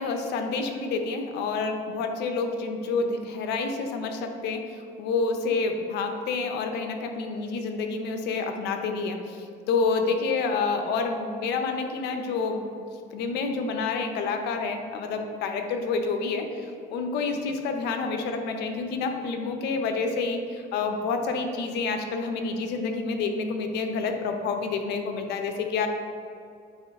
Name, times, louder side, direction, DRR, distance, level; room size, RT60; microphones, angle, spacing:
voice 1, 0.0-9.4 9.7-12.8 13.1-25.9, left 4 dB, 85° left, 5 dB, 0.7 m, -28 dB
9.0 x 3.0 x 3.6 m, 2.5 s
cardioid pair, 110°, 17 cm